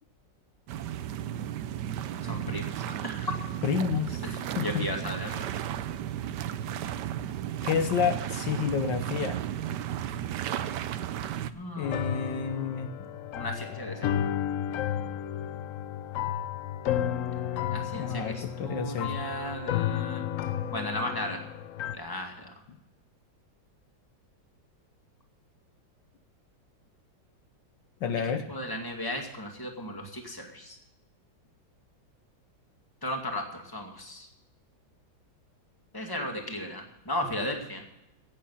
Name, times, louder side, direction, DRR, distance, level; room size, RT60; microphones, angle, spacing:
sound 1, 0.7-11.5, right 10 dB, 70° right, 1.2 m, -34 dB
voice 1, 2.2-3.3 4.2-5.5 11.5-13.0 13.4-14.1 17.7-20.3 20.7-21.4 21.9-22.5 28.5-30.8 33.0-34.3 35.9-37.8, left 1 dB, 10° left, 2 dB, 2.1 m, -36 dB
voice 2, 3.6-4.8 7.6-9.4 11.8-12.9 17.9-19.1 28.0-28.5, left 7 dB, 75° left, 8 dB, 1.6 m, -30 dB
sound 2, 11.8-22.0, left 10 dB, 90° left, 0.7 m, -32 dB
15.0 x 9.1 x 5.6 m, 0.90 s
omnidirectional pair, 2.0 m